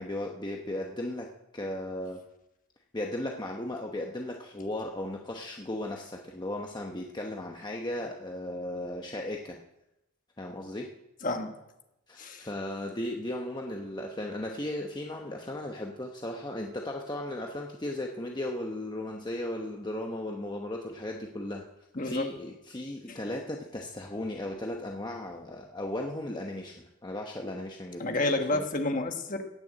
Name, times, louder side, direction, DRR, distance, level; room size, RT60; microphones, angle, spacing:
voice 1, 0.0-2.2 2.9-9.6 10.4-10.9 12.1-21.6 22.0-28.0 28.5-28.7, left 1 dB, 20° left, 1 dB, 0.9 m, -36 dB
voice 2, 11.2-11.5 12.2-12.5 21.9-22.3 23.1-23.2 28.0-29.4, left 2 dB, 40° left, 5 dB, 1.4 m, -30 dB
15.5 x 6.9 x 8.9 m, 0.89 s
head